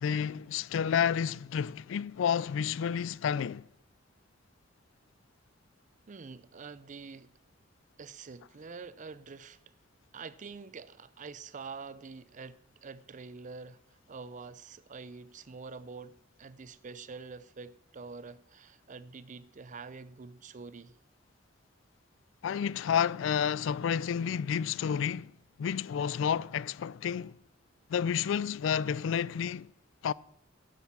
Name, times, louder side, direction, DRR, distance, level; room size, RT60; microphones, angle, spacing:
voice 1, 0.0-3.7 22.4-25.3 25.6-27.4 27.9-29.7 30.0-30.1, left 7 dB, 70° left, 0.3 m, -30 dB
voice 2, 6.1-7.3 8.0-9.6 10.1-21.0, right 4 dB, 40° right, 0.5 m, -46 dB
11.5 x 9.1 x 6.0 m
head